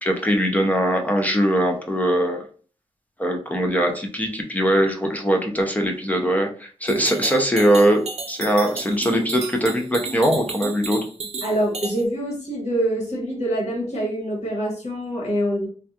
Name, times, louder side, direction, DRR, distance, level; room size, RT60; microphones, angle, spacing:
voice 1, 0.0-2.5 3.2-11.0, equal, 15° left, 2 dB, 0.5 m, -21 dB
sound 1, 6.9-12.0, right 4 dB, 65° right, 0.7 m, -33 dB
voice 2, 11.4-15.7, right 1 dB, 75° left, -3 dB, 1.6 m, -25 dB
3.3 x 2.3 x 2.7 m, 0.40 s
wide cardioid pair, 115°, 11 cm